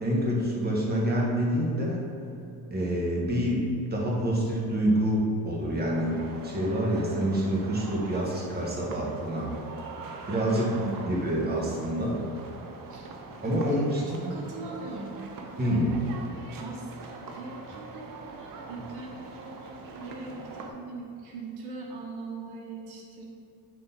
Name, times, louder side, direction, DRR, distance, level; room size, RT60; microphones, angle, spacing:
voice 1, 0.0-2.0 2.7-6.2 6.4-9.5 10.3-10.7 11.1-12.2 13.4-14.4 15.6-15.9, equal, 25° right, -3 dB, 1.5 m, -27 dB
sound 1, 5.9-20.7, right 3 dB, 60° right, 0.8 m, -43 dB
voice 2, 10.3-10.9 12.9-13.1 13.4-16.0 16.6-23.3, right 3 dB, 85° right, -1 dB, 1.0 m, -41 dB
7.6 x 3.7 x 4.1 m, 2.7 s
cardioid pair, 100°, 38 cm